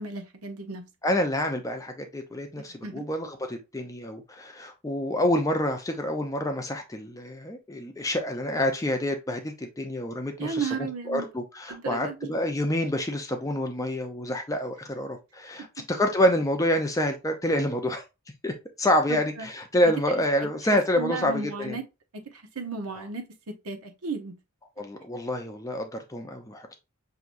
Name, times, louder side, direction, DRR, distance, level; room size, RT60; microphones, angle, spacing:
voice 1, 0.0-0.8 2.8-3.0 10.4-11.3 11.7-12.3 19.1-19.5 21.0-21.9 22.1-24.3, right 4 dB, 80° right, 0.9 m, -34 dB
voice 2, 1.0-18.0 18.4-18.5 18.8-21.8 24.8-26.7, left 1 dB, 15° left, 0.6 m, -27 dB
5.9 x 2.8 x 2.6 m
head